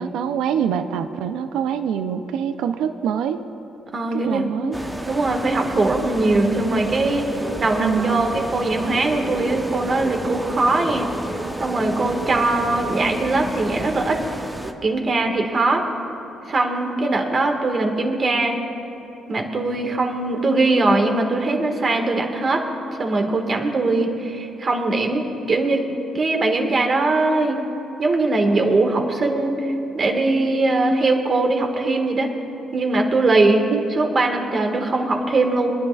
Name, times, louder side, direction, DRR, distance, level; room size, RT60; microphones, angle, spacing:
voice 1, 0.0-3.4 4.2-4.8 7.8-8.3 33.7-33.8, right 8 dB, 85° right, 9 dB, 0.4 m, -24 dB
voice 2, 3.9-4.4 5.1-7.2 7.6-11.1 11.6-14.2 14.8-15.8 16.5-18.6 19.3-22.6 23.0-25.8 26.1-27.6 28.0-32.3 32.7-33.6 33.9-35.7, right 2 dB, 45° right, 2 dB, 1.6 m, -21 dB
sound 1, 4.7-14.7, right 1 dB, 10° right, 0.8 m, -31 dB
26.0 x 10.5 x 2.4 m, 2.9 s
cardioid pair, 90°, 0 cm